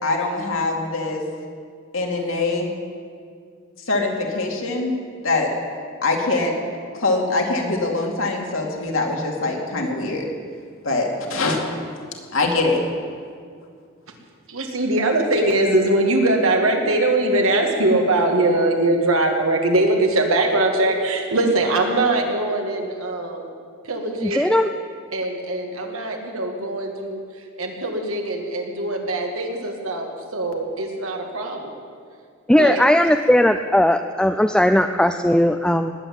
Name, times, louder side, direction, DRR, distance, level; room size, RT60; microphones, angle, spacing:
voice 1, 0.0-1.2 1.9-2.7 3.9-4.9 5.2-5.5 6.0-6.5 6.9-10.2 10.8-11.6 12.3-12.8, left 3 dB, 70° left, 1 dB, 2.7 m, -23 dB
voice 2, 14.5-23.5 23.8-24.7 25.1-31.7 32.6-32.8, right 2 dB, 90° right, 2 dB, 2.3 m, -22 dB
voice 3, 24.2-24.7 32.5-35.9, left 1 dB, 5° left, 7 dB, 0.4 m, -17 dB
19.5 x 8.2 x 8.8 m, 2.1 s
head